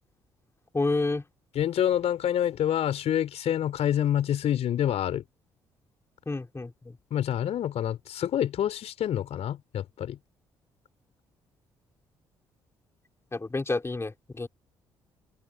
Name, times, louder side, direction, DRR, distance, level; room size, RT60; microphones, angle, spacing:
voice 1, 0.7-1.2 6.3-7.0 13.3-14.5, left 3 dB, 20° left, 4.6 m, -29 dB
voice 2, 1.5-5.2 7.1-10.2, left 10 dB, 55° left, 4.1 m, -27 dB
figure-of-eight pair, 45°, 13 cm